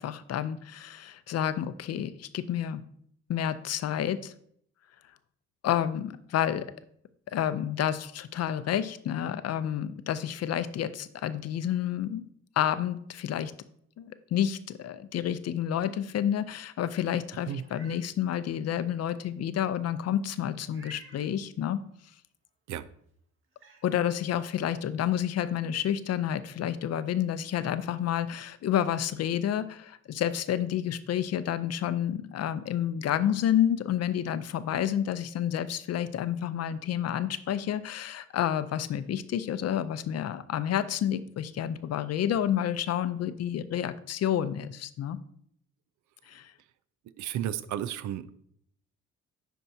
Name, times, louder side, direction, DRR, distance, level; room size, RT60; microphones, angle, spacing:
voice 1, 0.0-2.8 3.3-4.3 5.6-6.7 7.3-12.2 12.6-13.5 14.0-21.8 23.8-45.2 46.3-46.5, left 10 dB, 55° left, 13 dB, 0.5 m, -29 dB
Meow, 17.5-18.0 18.5-18.6 20.7-21.3 22.9-23.0 23.5-23.8, right 2 dB, 45° right, 1.4 m, -52 dB
voice 2, 47.2-48.3, right 11 dB, 75° right, 15 dB, 0.5 m, -33 dB
10.0 x 4.6 x 2.7 m, 0.67 s
cardioid pair, 90°, 30 cm